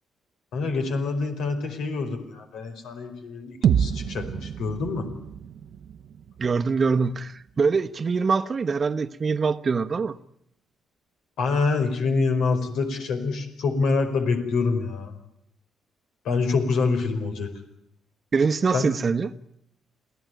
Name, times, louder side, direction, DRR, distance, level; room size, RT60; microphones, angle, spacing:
voice 1, 0.5-5.1 11.4-15.1 16.2-17.5 18.7-18.9, left 4 dB, 80° left, 4.9 m, -26 dB
sound 1, 3.6-7.6, right 8 dB, 65° right, 0.9 m, -28 dB
voice 2, 6.4-10.2 18.3-19.3, right 5 dB, 40° right, 1.1 m, -24 dB
28.0 x 17.0 x 9.3 m
cardioid pair, 90°, 0 cm